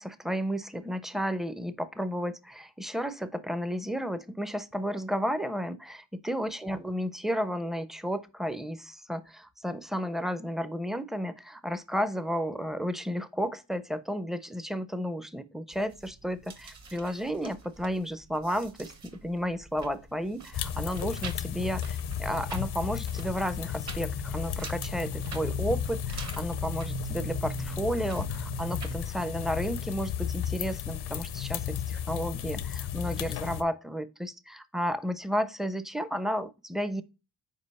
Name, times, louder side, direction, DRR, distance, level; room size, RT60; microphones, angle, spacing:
voice 1, 0.0-18.9 19.2-37.0, equal, ahead, 0.4 m, -32 dB
sound 1, 15.7-29.0, right 6 dB, 45° right, 1.2 m, -43 dB
sound 2, 20.5-33.6, left 10 dB, 90° left, 0.6 m, -34 dB
5.4 x 4.5 x 4.1 m
cardioid pair, 95°, 38 cm